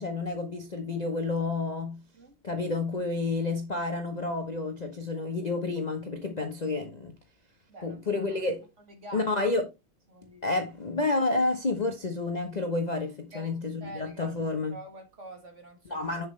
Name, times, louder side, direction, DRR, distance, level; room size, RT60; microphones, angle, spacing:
voice 1, 0.0-2.0 2.4-7.1 7.8-8.7 9.1-9.6 10.4-14.8 15.8-16.3, left 3 dB, 35° left, 0.7 m, -30 dB
voice 2, 7.7-8.4 8.9-9.3 10.1-10.6 13.3-14.4 14.7-16.1, right 1 dB, 35° right, 1.8 m, -46 dB
7.3 x 6.4 x 3.2 m
omnidirectional pair, 2.3 m